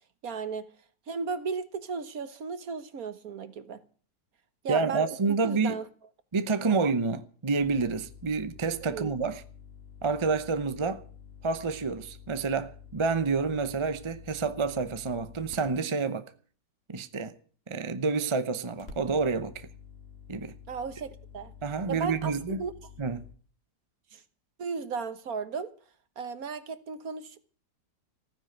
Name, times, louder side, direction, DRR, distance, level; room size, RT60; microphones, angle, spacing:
voice 1, 0.2-0.7 1.1-3.8 4.6-5.8 6.6-6.8 8.8-9.1 20.7-21.5 21.9-22.7 24.1-24.2 24.6-25.7 26.2-27.4, right 5 dB, 60° right, 1.6 m, -35 dB
voice 2, 4.7-5.8 6.3-9.4 10.0-11.0 11.4-16.2 16.9-17.3 17.7-19.7 20.3-20.5 21.6-22.6 23.0-23.2, right 4 dB, 25° right, 0.6 m, -28 dB
sound 1, 7.6-15.8 18.7-23.3, left 6 dB, 40° left, 3.0 m, -49 dB
15.0 x 9.9 x 7.8 m
omnidirectional pair, 1.8 m